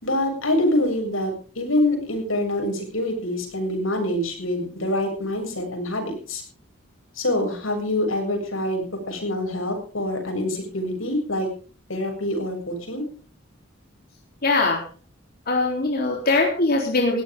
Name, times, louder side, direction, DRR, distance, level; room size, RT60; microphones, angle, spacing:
voice 1, 0.0-6.4 7.2-11.5 11.9-13.0, left 1 dB, 85° left, 3 dB, 7.2 m, -25 dB
voice 2, 14.4-14.8 15.5-17.2, left 3 dB, 50° left, 0 dB, 3.7 m, -21 dB
18.5 x 16.5 x 3.7 m, 0.40 s
head